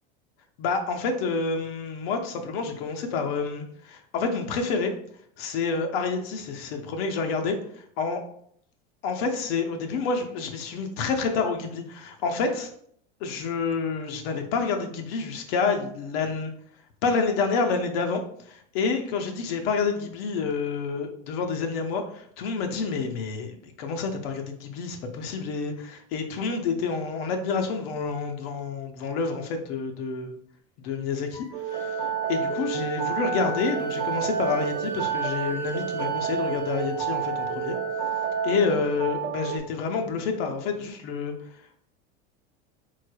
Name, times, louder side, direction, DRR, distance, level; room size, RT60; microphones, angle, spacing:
voice 1, 0.6-4.9 5.4-8.2 9.0-12.7 13.2-16.5 17.0-30.4 30.8-32.0 32.3-37.8 38.4-41.8, left 4 dB, 65° left, 4 dB, 0.6 m, -28 dB
Wind instrument woodwind instrument, 31.3-39.1, left 2 dB, 15° left, 0.5 m, -39 dB
sound 1, 31.5-39.6, right 8 dB, 90° right, 0.5 m, -30 dB
3.8 x 3.2 x 2.2 m, 0.65 s
supercardioid pair, 125°, 32 cm